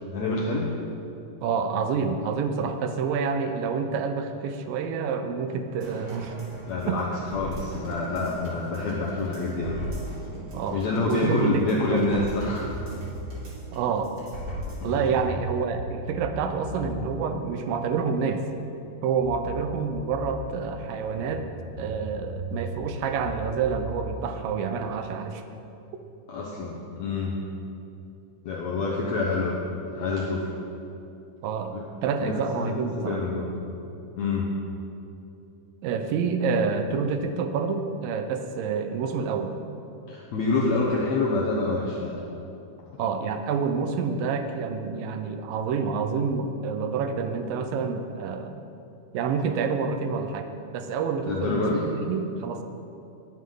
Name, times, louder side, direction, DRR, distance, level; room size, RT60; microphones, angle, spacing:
voice 1, 0.1-0.7 5.9-6.0 6.7-9.8 10.7-12.7 14.8-14.9 26.3-27.4 28.5-29.5 29.9-30.5 31.7-31.8 32.2-33.5 34.2-34.5 40.1-42.2 51.3-51.8, left 3 dB, 65° left, -3 dB, 2.0 m, -27 dB
voice 2, 1.4-6.4 6.9-7.0 10.5-10.8 11.1-12.0 13.7-14.1 14.8-18.4 19.0-21.4 21.8-25.4 31.4-31.7 32.0-33.2 35.8-39.5 43.0-48.6 49.1-51.7 52.0-52.6, right 5 dB, 85° right, 7 dB, 2.5 m, -28 dB
sound 1, 5.8-15.2 15.6-15.7, right 1 dB, 30° right, 2.6 m, -39 dB
sound 2, 12.1-13.4 14.6-18.3 19.2-20.4 21.2-25.1, right 1 dB, 70° right, 4.3 m, -38 dB
18.5 x 9.2 x 3.9 m, 2.8 s
omnidirectional pair, 3.9 m